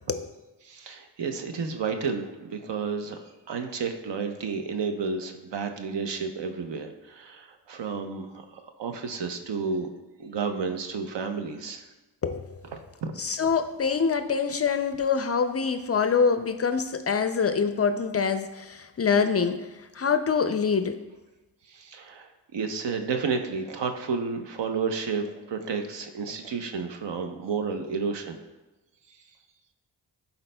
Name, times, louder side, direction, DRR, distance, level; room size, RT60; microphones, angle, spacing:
voice 1, 0.6-3.2 3.5-9.9 10.2-11.8 12.7-13.1 21.7-28.4 29.1-29.2, right 5 dB, 65° right, 6 dB, 0.8 m, -31 dB
voice 2, 13.2-19.7 19.9-21.0, left 5 dB, 35° left, 9 dB, 0.4 m, -25 dB
12.0 x 4.1 x 2.2 m, 1.1 s
cardioid pair, 55°, 45 cm